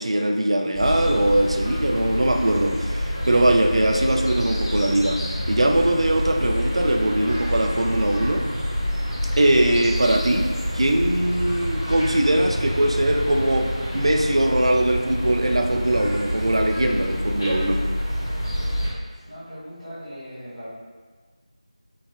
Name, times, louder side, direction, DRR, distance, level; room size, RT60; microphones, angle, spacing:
voice 1, 0.0-8.4 9.3-10.5 10.7-17.9, right 1 dB, 55° right, 3 dB, 0.3 m, -21 dB
sound 1, 0.7-18.9, equal, 35° left, 0.9 m, -27 dB
voice 2, 18.7-20.7, equal, 10° right, -22 dB, 0.9 m, -40 dB
3.4 x 3.1 x 2.3 m, 1.5 s
figure-of-eight pair, 170°, 4 cm